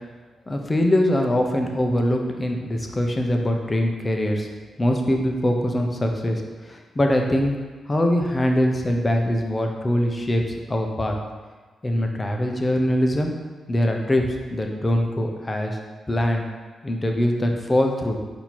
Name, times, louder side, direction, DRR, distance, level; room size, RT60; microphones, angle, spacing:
voice 1, 0.5-4.5 4.8-7.6 7.9-11.2 11.8-13.3 13.7-15.8 16.1-16.4 16.8-18.4, left 1 dB, 25° left, 2 dB, 0.6 m, -23 dB
4.3 x 2.8 x 4.2 m, 1.4 s
supercardioid pair, 55°, 0 cm